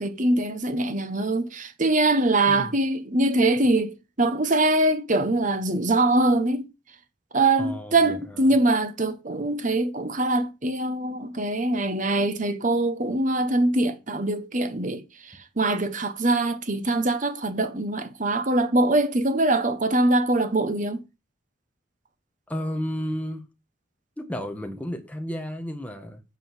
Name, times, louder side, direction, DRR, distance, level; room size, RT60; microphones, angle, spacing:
voice 1, 0.0-6.7 7.3-21.0, right 2 dB, 40° right, 1.3 m, -23 dB
voice 2, 7.6-8.5 22.5-23.4 24.2-26.2, equal, 5° left, 1.6 m, -32 dB
9.0 x 5.5 x 7.4 m
head